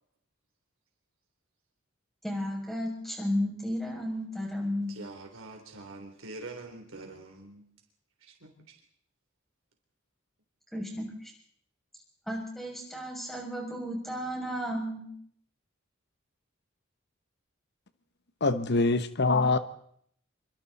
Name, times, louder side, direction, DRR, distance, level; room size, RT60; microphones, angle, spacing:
voice 1, 2.2-4.9 10.7-11.3 12.3-15.1, equal, ahead, 6.9 m, -33 dB
voice 2, 4.9-7.6 8.2-8.5, right 2 dB, 75° right, 3.7 m, -44 dB
voice 3, 18.4-19.6, left 3 dB, 55° left, 1.1 m, -24 dB
27.0 x 23.5 x 4.2 m
head